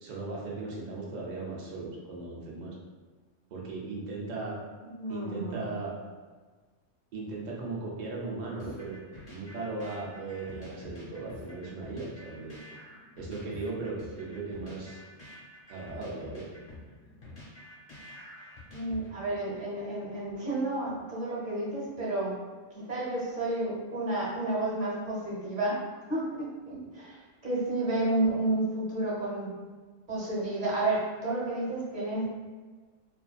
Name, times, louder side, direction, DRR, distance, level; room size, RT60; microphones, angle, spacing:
voice 1, 0.0-2.7 3.5-4.6 5.1-5.9 7.1-8.9 9.3-12.6 13.2-15.0 15.7-16.5 26.7-26.8, right 3 dB, 85° right, -4 dB, 0.4 m, -37 dB
voice 2, 4.8-5.6 18.7-22.4 22.7-25.8 26.1-29.5 30.1-32.4, right 2 dB, 45° right, -7 dB, 0.9 m, -31 dB
sound 1, 8.6-19.4, left 2 dB, 40° left, 0.9 m, -48 dB
2.4 x 2.4 x 2.2 m, 1.4 s
omnidirectional pair, 1.3 m